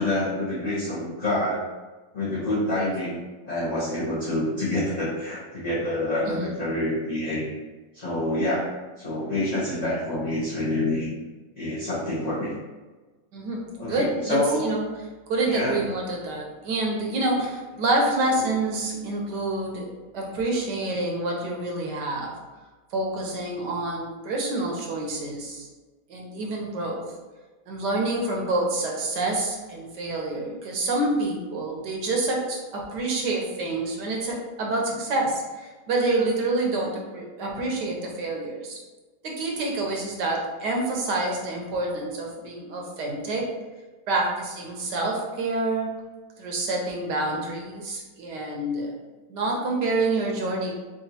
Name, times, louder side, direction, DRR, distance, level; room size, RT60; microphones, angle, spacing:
voice 1, 0.0-1.6 2.1-3.2 3.4-7.5 7.9-11.1 11.6-12.5 13.8-14.7 15.5-15.9, left 1 dB, 35° left, -10 dB, 0.7 m, -27 dB
voice 2, 13.3-14.9 15.3-19.9 20.1-22.3 22.9-25.7 26.1-27.0 27.7-38.8 39.2-43.5 44.1-45.9 46.4-48.9 49.3-50.8, right 2 dB, 75° right, -1 dB, 1.4 m, -27 dB
4.9 x 2.6 x 2.8 m, 1.3 s
omnidirectional pair, 1.9 m